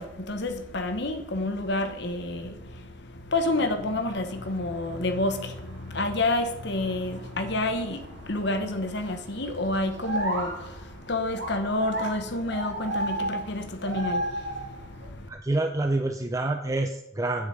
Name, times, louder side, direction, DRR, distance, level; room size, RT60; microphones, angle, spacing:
voice 1, 0.0-15.3, left 2 dB, 60° left, 7 dB, 1.2 m, -29 dB
sound 1, 4.3-15.1, right 1 dB, 60° right, 2.2 m, -36 dB
voice 2, 15.3-17.5, right 2 dB, 15° right, 5 dB, 0.5 m, -27 dB
7.3 x 6.8 x 8.1 m, 0.88 s
head